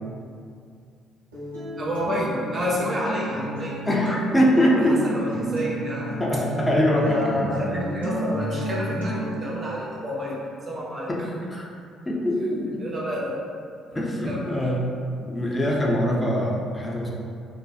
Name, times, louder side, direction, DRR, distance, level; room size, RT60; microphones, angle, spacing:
Acoustic guitar, 1.3-9.3, equal, 80° right, 0.6 m, -32 dB
voice 1, 1.8-3.8 4.7-6.1 7.0-11.1 12.8-13.4 14.3-14.8, equal, 35° right, -5 dB, 0.7 m, -29 dB
voice 2, 3.9-5.0 6.2-7.3 11.1-11.7 12.1-12.8 13.9-14.8 15.3-17.1, equal, 15° left, -3 dB, 0.5 m, -23 dB
2.5 x 2.2 x 2.4 m, 2.3 s
figure-of-eight pair, 45°, 0 cm